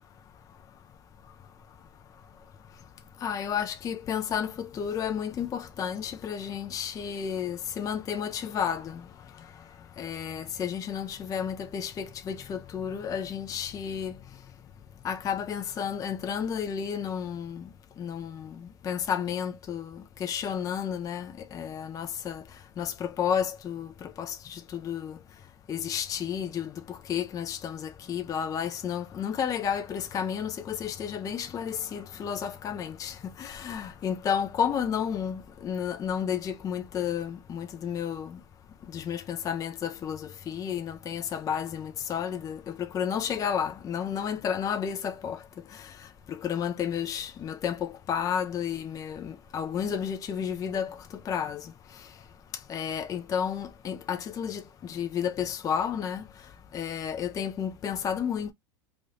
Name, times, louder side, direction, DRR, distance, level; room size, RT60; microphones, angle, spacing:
voice 1, 3.2-9.0 10.0-14.1 15.0-17.7 18.0-22.4 22.8-25.2 25.7-38.4 38.9-45.4 46.3-51.7 52.7-56.3 56.7-58.5, left 8 dB, 25° left, 0.4 m, -32 dB
3.3 x 2.3 x 2.6 m
hypercardioid pair, 100°, 14 cm